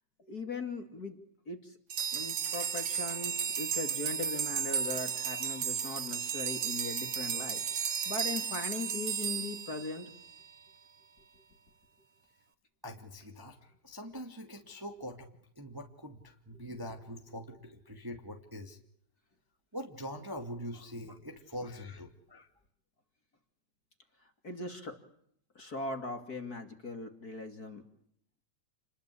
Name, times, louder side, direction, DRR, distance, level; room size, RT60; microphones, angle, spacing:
voice 1, 0.3-1.2 1.5-1.7 2.1-10.1 16.7-16.9 24.4-25.0 25.5-27.8, left 3 dB, 30° left, 7 dB, 2.9 m, -39 dB
sound 1, 1.9-10.4, right 7 dB, 50° right, 1.6 m, -34 dB
voice 2, 12.8-13.6 13.8-18.8 19.7-22.5, equal, 10° right, 4 dB, 2.1 m, -43 dB
30.0 x 21.5 x 8.6 m, 0.69 s
omnidirectional pair, 3.4 m